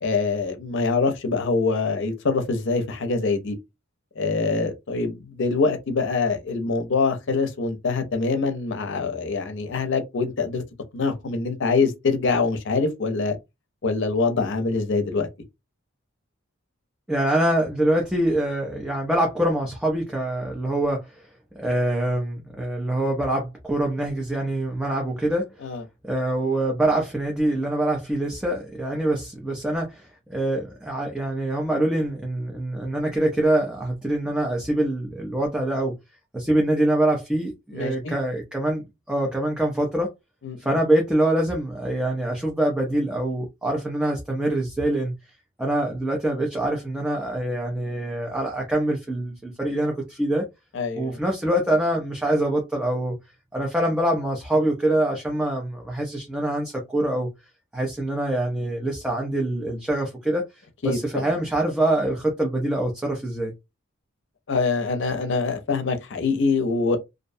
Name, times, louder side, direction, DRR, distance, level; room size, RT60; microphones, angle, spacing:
voice 1, 0.0-3.6 4.2-10.6 10.9-13.4 13.8-15.3 25.6-25.8 37.7-38.1 40.4-40.7 50.7-51.2 60.8-61.3 64.5-67.0, left 4 dB, 65° left, 0.6 m, -24 dB
voice 2, 17.1-21.2 21.6-25.5 26.1-36.0 36.3-40.1 40.6-45.2 45.6-50.5 50.9-53.2 53.5-57.3 57.7-60.5 60.8-63.5, right 1 dB, 5° right, 0.5 m, -24 dB
2.5 x 2.1 x 2.6 m
head